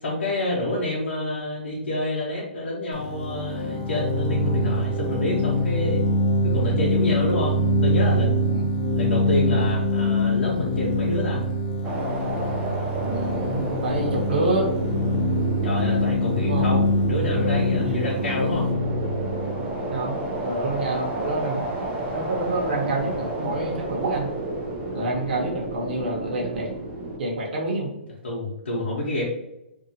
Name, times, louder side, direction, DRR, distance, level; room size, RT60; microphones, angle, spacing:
voice 1, 0.0-6.0 6.4-8.4 8.9-11.4 15.6-18.7 24.9-25.2 28.2-29.2, left 1 dB, 85° left, -6 dB, 0.9 m, -28 dB
sound 1, 2.9-20.5, left 1 dB, 30° left, 0.6 m, -24 dB
sound 2, 11.8-27.2, right 2 dB, 20° right, 0.4 m, -31 dB
voice 2, 13.0-14.7 16.4-16.7 17.8-18.0 19.9-21.6 22.1-24.3 24.9-26.7 27.2-27.9, right 2 dB, 55° right, -1 dB, 1.0 m, -27 dB
2.7 x 2.4 x 2.7 m, 0.87 s
hypercardioid pair, 150°, 6 cm